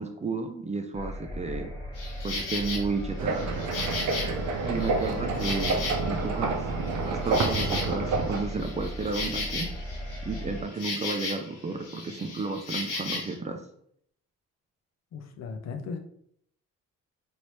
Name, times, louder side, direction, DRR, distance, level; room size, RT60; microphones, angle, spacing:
voice 1, 0.0-1.7 2.2-3.5 4.6-5.8 6.1-6.6 7.0-9.7 10.3-13.6, right 3 dB, 25° right, 5 dB, 0.4 m, -32 dB
sound 1, 0.9-10.6, equal, 15° left, 1.2 m, -37 dB
Insect, 1.9-2.8 3.3-6.3 6.7-11.6 11.8-13.3, left 3 dB, 90° left, 1.0 m, -35 dB
sound 2, 3.2-8.4, right 4 dB, 70° right, 0.6 m, -29 dB
voice 2, 4.8-5.5 15.1-16.0, left 5 dB, 60° left, 5 dB, 0.6 m, -38 dB
3.2 x 2.7 x 3.0 m, 0.67 s
cardioid pair, 90°, 30 cm